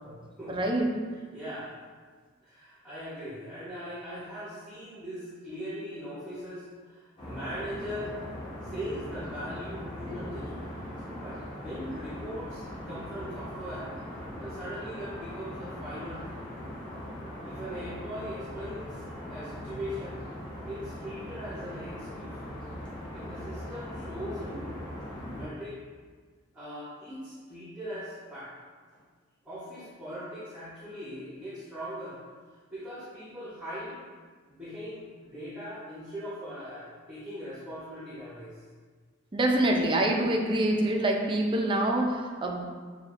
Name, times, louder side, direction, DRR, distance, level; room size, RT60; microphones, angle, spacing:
voice 1, 0.5-0.9 39.3-42.6, right 1 dB, 25° right, 1 dB, 0.4 m, -26 dB
voice 2, 1.3-1.8 2.4-8.2 8.6-10.7 11.2-13.9 14.4-16.4 17.4-19.0 19.3-20.3 20.6-22.4 23.1-24.7 25.3-25.8 26.5-28.5 29.4-32.2 32.7-34.1 34.5-38.6, equal, 5° right, -10 dB, 0.9 m, -40 dB
sound 1, 7.2-25.4, equal, 20° left, 0.9 m, -40 dB
6.4 x 2.4 x 2.5 m, 1.5 s
head